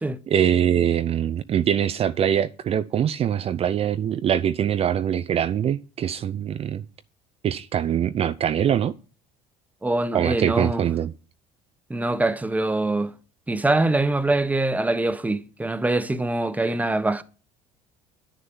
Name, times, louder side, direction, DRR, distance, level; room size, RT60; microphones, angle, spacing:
voice 1, 0.3-6.8 7.4-8.9 10.1-11.1, right 9 dB, 45° right, 0.6 m, -23 dB
voice 2, 9.8-10.9 11.9-13.1 13.5-17.2, right 2 dB, 10° right, 1.1 m, -24 dB
11.0 x 6.7 x 7.1 m
supercardioid pair, 80°, 14 cm